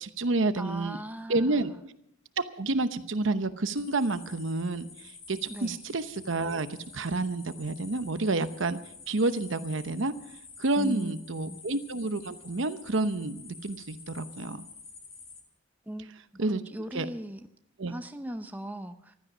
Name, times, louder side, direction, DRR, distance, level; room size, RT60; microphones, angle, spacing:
voice 1, 0.0-1.0 1.3-1.7 2.4-6.7 6.9-8.8 9.1-10.1 10.6-14.6 16.4-16.6 16.9-17.0 17.8-17.9, right 2 dB, 70° right, 12 dB, 0.9 m, -29 dB
voice 2, 0.6-1.8 5.5-5.8 10.7-11.6 15.9-16.1 16.5-17.5 17.9-19.2, right 1 dB, 10° right, 8 dB, 0.6 m, -38 dB
sound 1, 3.7-15.4, left 4 dB, 30° left, 2.5 m, -49 dB
15.5 x 13.0 x 6.1 m, 0.76 s
head